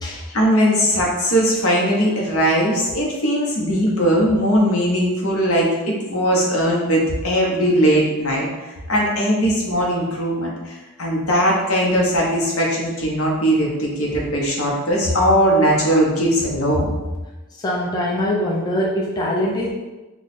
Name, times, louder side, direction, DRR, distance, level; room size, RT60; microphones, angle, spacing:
voice 1, 0.3-8.5 8.9-16.9, equal, 70° left, -3 dB, 1.0 m, -19 dB
voice 2, 17.6-19.7, left 1 dB, 20° left, -4 dB, 0.4 m, -22 dB
3.1 x 2.3 x 4.1 m, 1.1 s
head